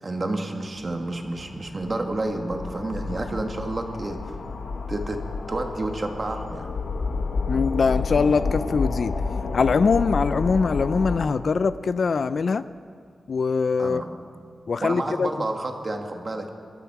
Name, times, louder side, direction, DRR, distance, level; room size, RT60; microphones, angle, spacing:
voice 1, 0.0-4.2 4.9-5.2 5.5-6.7 13.8-14.1 14.8-16.5, right 2 dB, 35° right, 3 dB, 1.6 m, -30 dB
sound 1, 0.8-11.3, left 4 dB, 90° left, 1.3 m, -30 dB
voice 2, 7.5-9.2 9.5-12.6 13.3-14.0 14.7-15.3, left 5 dB, 55° left, 14 dB, 0.4 m, -22 dB
22.0 x 13.0 x 4.7 m, 2.2 s
wide cardioid pair, 125°, 0 cm